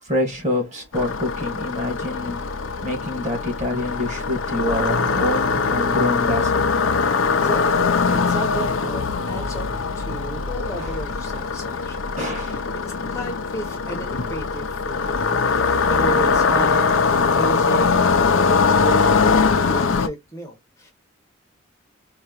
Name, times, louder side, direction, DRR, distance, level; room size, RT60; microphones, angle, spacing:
voice 1, 0.0-2.4 2.8-6.7 10.8-11.0 12.2-12.7, left 1 dB, 35° right, 1.9 m, -26 dB
sound 1, 0.9-20.1, left 4 dB, 70° left, 0.6 m, -21 dB
voice 2, 7.3-9.7 9.9-12.0 12.3-12.6 13.0-19.0 19.5-20.9, right 1 dB, 15° left, 0.9 m, -33 dB
4.6 x 2.9 x 2.9 m
head